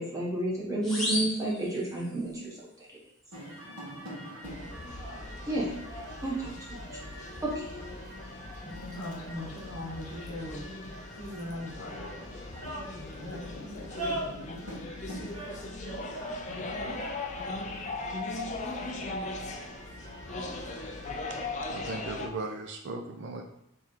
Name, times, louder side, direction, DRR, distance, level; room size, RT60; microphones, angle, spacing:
voice 1, 0.0-3.0 5.5-5.7 6.2-6.8 7.4-7.7, right 1 dB, 15° right, -5 dB, 1.2 m, -31 dB
sound 1, 0.8-2.4, left 1 dB, ahead, 0.9 m, -34 dB
sound 2, 3.3-21.5, right 1 dB, 85° right, 1.7 m, -44 dB
sound 3, 4.4-22.3, left 2 dB, 30° left, 0.4 m, -39 dB
voice 2, 8.6-10.6 11.1-12.3 13.2-14.6 16.5-16.9, left 1 dB, 85° left, -1 dB, 1.2 m, -40 dB
voice 3, 21.7-23.4, right 3 dB, 50° right, 3 dB, 0.4 m, -37 dB
3.6 x 3.3 x 4.4 m, 0.83 s
head